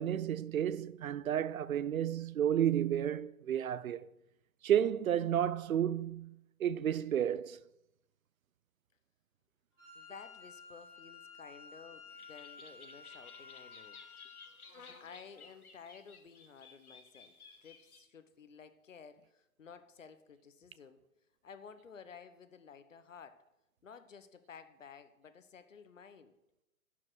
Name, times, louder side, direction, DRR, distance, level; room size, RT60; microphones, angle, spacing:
voice 1, 0.0-4.1 4.6-7.6, right 10 dB, 70° right, 0.6 m, -32 dB
Wind instrument woodwind instrument, 9.8-14.6, left 4 dB, 5° right, 1.2 m, -53 dB
voice 2, 9.9-14.0 14.2-14.3 15.0-21.0 21.4-23.4 23.8-26.3, left 6 dB, 60° left, 1.1 m, -54 dB
sound 1, 12.1-18.0, left 4 dB, 90° left, 1.8 m, -56 dB
11.0 x 5.7 x 6.3 m
hypercardioid pair, 175°, 43 cm